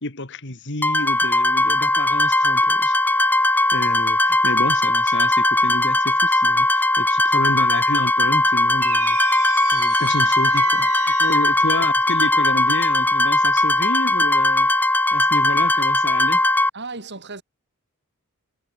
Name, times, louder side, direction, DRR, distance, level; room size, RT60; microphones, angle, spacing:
voice 1, 0.0-3.4 3.7-9.2 9.7-14.7 15.1-16.4, left 2 dB, 55° left, 3.0 m, -29 dB
sound 1, 0.8-16.7, left 2 dB, 10° left, 2.1 m, -19 dB
sound 2, 8.8-11.7, right 11 dB, 75° right, 1.5 m, -32 dB
voice 2, 16.7-17.4, right 3 dB, 50° right, 4.6 m, -35 dB
head